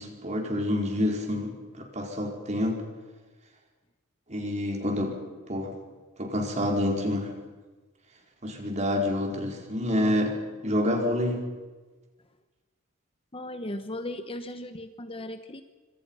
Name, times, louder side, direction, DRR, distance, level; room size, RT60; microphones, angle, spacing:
voice 1, 0.0-2.8 4.3-5.2 5.5-5.7 6.2-7.3 8.4-11.5, left 1 dB, 35° right, 2 dB, 4.7 m, -28 dB
voice 2, 13.3-15.6, left 1 dB, 25° left, 9 dB, 1.0 m, -37 dB
26.5 x 25.5 x 5.7 m, 1.3 s
head